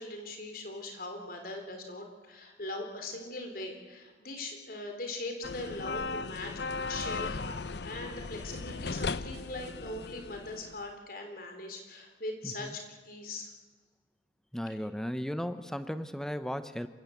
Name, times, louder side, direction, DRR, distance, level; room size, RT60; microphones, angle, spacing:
voice 1, 0.0-13.5, left 2 dB, 55° left, 4 dB, 3.8 m, -41 dB
sound 1, 5.4-10.8, left 4 dB, 70° left, 0.7 m, -37 dB
voice 2, 14.5-16.9, equal, 5° left, 11 dB, 0.8 m, -36 dB
27.0 x 15.5 x 8.0 m, 1.4 s
head